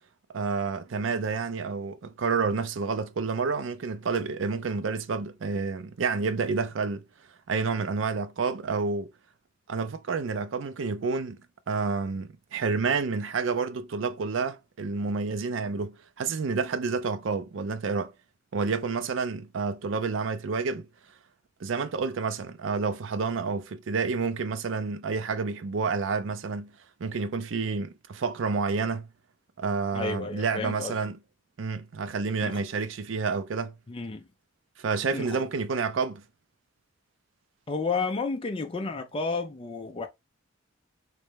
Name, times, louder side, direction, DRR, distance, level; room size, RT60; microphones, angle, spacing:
voice 1, 0.3-7.0 7.5-9.1 9.7-11.4 11.7-18.1 18.5-20.9 21.6-26.7 27.0-29.1 29.6-31.2 31.6-33.7 34.8-36.2, right 4 dB, 70° right, 0.5 m, -29 dB
voice 2, 29.9-30.9 32.4-32.6 33.9-34.2 35.1-35.4 37.7-40.1, left 4 dB, 30° left, 0.4 m, -31 dB
3.3 x 3.1 x 3.3 m
head